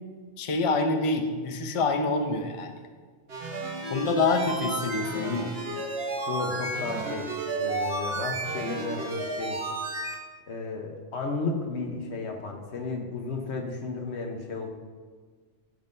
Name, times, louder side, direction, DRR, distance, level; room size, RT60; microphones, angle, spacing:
voice 1, 0.4-2.8 3.9-5.6, left 3 dB, 40° left, 5 dB, 0.5 m, -26 dB
sound 1, 3.3-10.1, right 2 dB, 55° right, 1.3 m, -32 dB
voice 2, 6.3-7.3 7.6-9.6 10.5-14.7, left 3 dB, 65° left, 2 dB, 1.3 m, -33 dB
15.0 x 5.5 x 2.7 m, 1.5 s
omnidirectional pair, 1.2 m